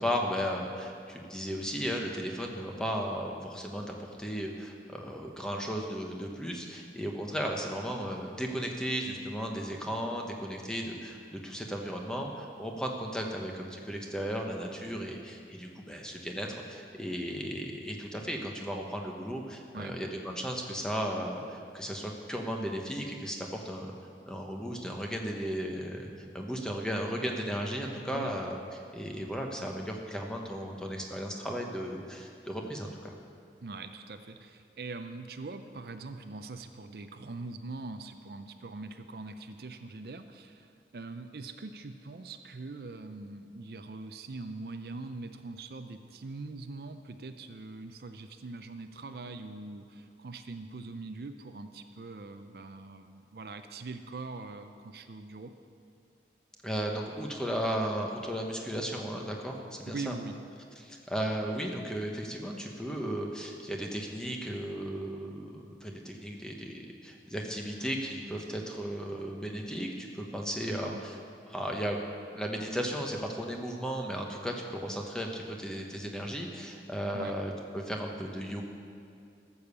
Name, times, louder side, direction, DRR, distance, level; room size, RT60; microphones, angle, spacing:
voice 1, 0.0-23.9 24.3-26.1 26.3-33.1 56.6-60.1 60.8-71.1 71.5-72.0 72.3-78.6, equal, 5° left, 1 dB, 1.0 m, -35 dB
voice 2, 33.6-55.5 59.9-60.4 70.7-71.0 77.1-77.4, right 3 dB, 60° right, 8 dB, 0.5 m, -42 dB
13.5 x 7.0 x 6.8 m, 2.4 s
head